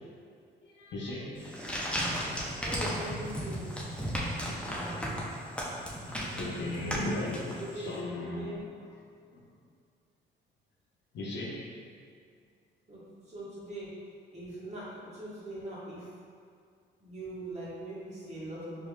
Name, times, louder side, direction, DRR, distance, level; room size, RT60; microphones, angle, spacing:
voice 1, 0.6-1.9 5.8-7.5 7.8-8.5 9.3-9.5 11.1-11.7, left 1 dB, 65° left, -4 dB, 0.8 m, -37 dB
sound 1, 1.4-7.9, equal, 5° left, 0.7 m, -35 dB
voice 2, 2.6-3.8 7.0-8.6 12.9-13.9 14.3-16.1 17.0-18.9, right 1 dB, 35° right, -9 dB, 1.4 m, -41 dB
4.4 x 2.8 x 2.3 m, 2.3 s
cardioid pair, 90°, 20 cm